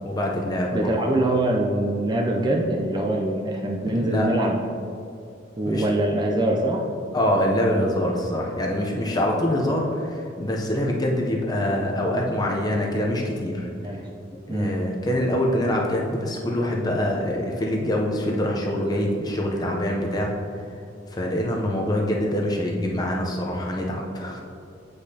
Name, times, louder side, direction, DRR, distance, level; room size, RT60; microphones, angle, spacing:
voice 1, 0.0-0.9 3.8-4.3 5.6-5.8 7.1-13.7 14.3-20.3 21.1-24.4, left 1 dB, 20° left, -1 dB, 0.6 m, -25 dB
voice 2, 0.7-4.6 5.6-6.9 13.8-14.0 14.5-14.8, right 1 dB, 25° right, 0 dB, 0.4 m, -23 dB
8.1 x 5.1 x 2.8 m, 2.5 s
head